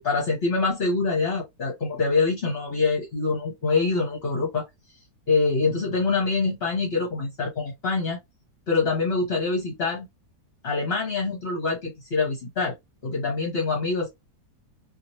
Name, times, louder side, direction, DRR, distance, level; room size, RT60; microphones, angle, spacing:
voice 1, 0.0-4.6 5.3-8.2 8.7-10.1 10.6-12.7 13.0-14.1, left 4 dB, 40° left, 1.1 m, -25 dB
3.0 x 2.8 x 2.7 m
omnidirectional pair, 1.8 m